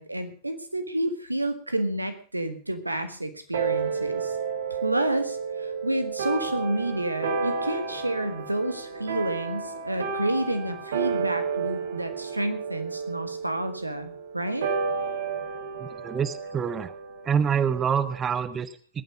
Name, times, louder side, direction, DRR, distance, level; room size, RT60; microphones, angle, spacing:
voice 1, 0.0-4.3 4.8-14.7, right 1 dB, 85° right, 9 dB, 1.6 m, -30 dB
sound 1, 3.5-18.3, right 5 dB, 60° right, 2.1 m, -32 dB
voice 2, 15.8-16.9 17.2-19.0, right 7 dB, 25° right, 13 dB, 0.9 m, -26 dB
20.5 x 9.2 x 4.9 m, 0.42 s
figure-of-eight pair, 90°, 0 cm